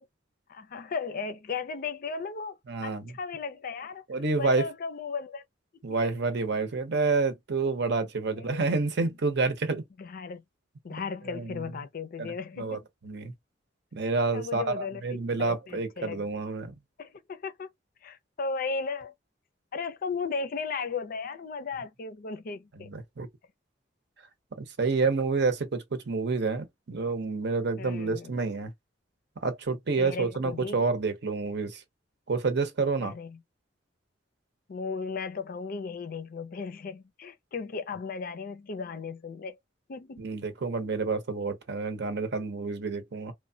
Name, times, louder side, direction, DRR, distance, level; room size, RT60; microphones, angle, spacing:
voice 1, 0.5-4.1 4.4-5.4 8.3-8.7 9.0-9.1 10.0-10.4 10.8-12.9 14.3-16.3 17.0-17.7 18.0-19.1 19.7-22.9 27.8-28.3 30.0-30.8 33.0-33.4 34.7-39.6 39.9-40.3, left 4 dB, 50° left, 0.5 m, -36 dB
voice 2, 2.7-3.1 4.1-4.7 5.8-9.8 11.3-11.6 12.2-12.3 12.6-12.8 13.0-13.3 13.9-16.7 22.9-23.3 24.6-28.7 29.4-31.8 32.3-33.1 40.2-43.3, right 4 dB, 65° right, 0.7 m, -28 dB
3.0 x 2.2 x 2.7 m
head